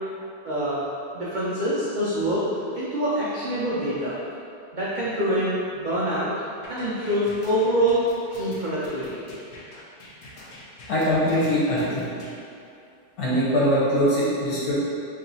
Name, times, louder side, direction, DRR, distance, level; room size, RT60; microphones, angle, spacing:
voice 1, 0.4-0.8 1.1-2.4 2.8-4.2 4.7-6.3 6.7-8.0 8.3-9.2, right 1 dB, 75° right, -8 dB, 0.4 m, -25 dB
sound 1, 6.6-12.3, left 1 dB, 60° left, 0.8 m, -45 dB
voice 2, 10.9-12.1 13.2-14.7, equal, 80° left, -8 dB, 1.6 m, -22 dB
3.1 x 2.9 x 3.9 m, 2.6 s
omnidirectional pair, 1.6 m